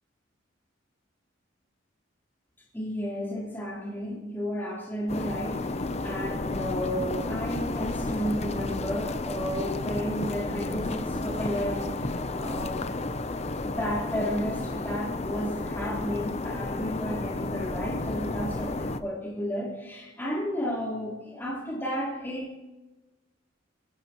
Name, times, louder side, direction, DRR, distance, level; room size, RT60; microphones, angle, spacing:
voice 1, 2.7-12.9 13.6-22.6, equal, 10° left, -5 dB, 3.8 m, -33 dB
sound 1, 5.1-19.0, left 2 dB, 35° left, 0.7 m, -32 dB
22.5 x 16.5 x 3.1 m, 1.1 s
head